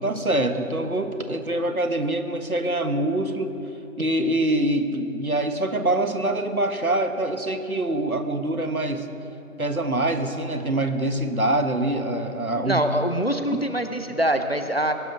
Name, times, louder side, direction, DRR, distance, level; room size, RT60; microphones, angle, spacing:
voice 1, 0.0-3.5 4.0-9.1 9.6-12.8, right 1 dB, 75° right, 7 dB, 1.4 m, -24 dB
voice 2, 12.6-14.9, right 1 dB, 45° left, 8 dB, 0.8 m, -24 dB
22.0 x 11.5 x 3.9 m, 2.9 s
figure-of-eight pair, 180°, 43 cm